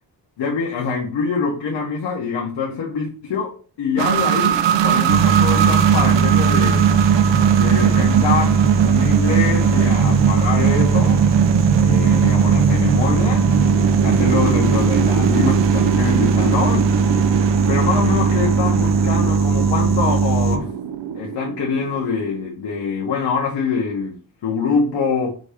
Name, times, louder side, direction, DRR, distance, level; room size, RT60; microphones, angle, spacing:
voice 1, 0.4-6.9 7.5-11.2 11.7-13.5 14.0-16.9 17.7-20.7 21.1-24.2 24.4-25.3, left 5 dB, 80° left, -2 dB, 1.0 m, -24 dB
sound 1, 4.0-22.5, right 10 dB, 85° right, 0.5 m, -20 dB
sound 2, 5.1-20.6, right 4 dB, 40° right, 0.6 m, -19 dB
5.1 x 2.7 x 3.4 m, 0.40 s
wide cardioid pair, 180°, 42 cm